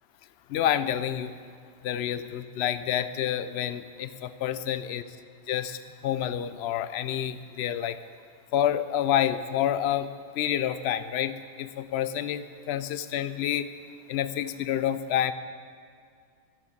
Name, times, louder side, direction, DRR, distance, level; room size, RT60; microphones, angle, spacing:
voice 1, 0.5-1.3 1.8-5.0 5.5-8.0 8.5-13.7 14.1-15.3, left 10 dB, 70° left, 13 dB, 0.9 m, -28 dB
14.5 x 7.5 x 8.6 m, 2.2 s
omnidirectional pair, 1.2 m